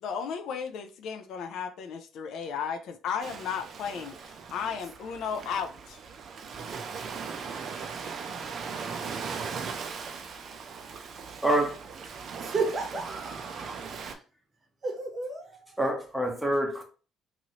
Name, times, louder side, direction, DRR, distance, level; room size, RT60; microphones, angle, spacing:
voice 1, 0.0-6.0, left 7 dB, 65° left, 0.4 m, -34 dB
Ocean, 3.2-14.1, right 5 dB, 45° right, 0.4 m, -39 dB
voice 2, 6.9-7.4 7.6-8.4 10.2-11.4 12.4-13.7 14.0-14.2 14.8-15.8, right 3 dB, 30° right, 0.8 m, -36 dB
voice 3, 11.4-11.8 15.8-16.8, right 1 dB, ahead, 0.7 m, -26 dB
3.0 x 2.6 x 2.8 m
cardioid pair, 150°, 0 cm